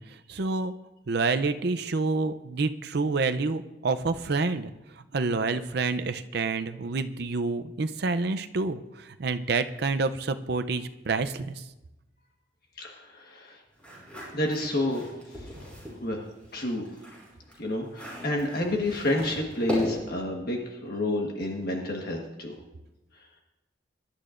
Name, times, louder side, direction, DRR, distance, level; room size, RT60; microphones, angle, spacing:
voice 1, 0.3-0.7 1.1-4.7 5.1-8.8 9.2-11.6, right 3 dB, 55° right, 9 dB, 0.6 m, -28 dB
voice 2, 12.8-13.6 14.3-15.7 16.0-16.3 16.5-16.9 17.6-22.6, left 1 dB, 50° left, 1 dB, 1.4 m, -30 dB
sound 1, 13.8-16.0 16.4-20.2, equal, 5° left, 5.6 m, -38 dB
23.0 x 11.5 x 2.5 m, 0.99 s
head